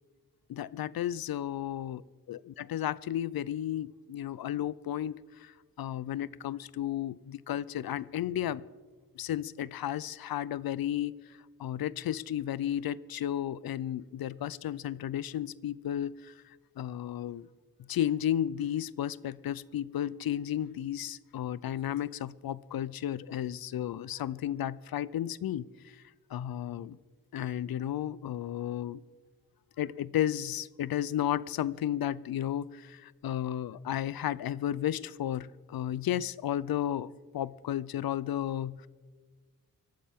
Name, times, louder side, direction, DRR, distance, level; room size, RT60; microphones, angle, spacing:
voice 1, 0.5-2.0 2.3-8.6 9.2-17.5 17.9-26.0 26.3-27.0 27.3-29.0 29.8-38.9, left 11 dB, 85° left, 20 dB, 0.5 m, -33 dB
23.5 x 13.0 x 3.6 m, 1.4 s
wide cardioid pair, 165°, 35 cm